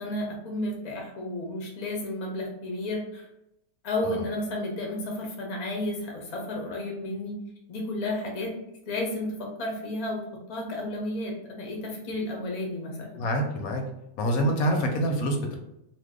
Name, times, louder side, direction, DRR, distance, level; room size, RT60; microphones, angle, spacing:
voice 1, 0.0-3.2 3.8-7.4 7.7-8.5 8.9-10.2 10.5-13.2, left 1 dB, 45° left, -1 dB, 0.5 m, -32 dB
voice 2, 13.1-13.8 14.2-15.6, equal, 75° left, 3 dB, 1.0 m, -26 dB
2.7 x 2.1 x 3.5 m, 0.83 s
omnidirectional pair, 1.6 m